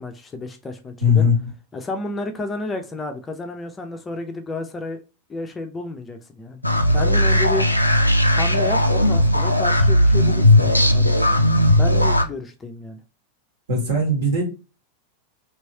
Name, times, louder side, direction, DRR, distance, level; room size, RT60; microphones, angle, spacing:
voice 1, 0.0-1.3 1.7-5.0 5.3-6.6 6.9-7.7 8.3-11.4 11.8-13.0, left 2 dB, 15° left, 0.5 m, -31 dB
voice 2, 1.0-1.4 13.7-14.4, left 3 dB, 60° right, 1.5 m, -18 dB
sound 1, 6.6-12.2, left 1 dB, 85° left, 0.4 m, -17 dB
3.1 x 3.0 x 2.8 m
figure-of-eight pair, 90°, 0 cm